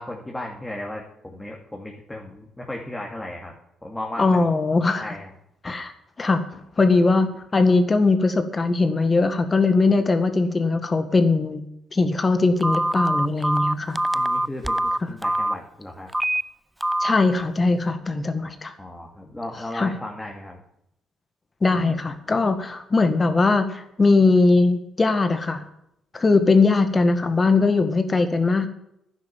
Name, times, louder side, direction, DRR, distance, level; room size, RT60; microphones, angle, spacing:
voice 1, 0.0-3.5 3.8-4.5 5.0-5.3 14.1-16.1 18.8-20.6, left 1 dB, 10° left, -1 dB, 2.4 m, -35 dB
voice 2, 4.2-5.1 5.6-5.9 6.2-11.6 11.9-14.0 17.0-18.7 19.7-19.9 21.6-25.7 26.1-28.7, left 3 dB, 30° left, 8 dB, 1.8 m, -20 dB
Telephone, 12.6-15.5 16.1-16.4 16.8-17.1, right 1 dB, 5° right, 0.4 m, -23 dB
10.5 x 9.9 x 7.2 m, 0.77 s
cardioid pair, 90°, 0 cm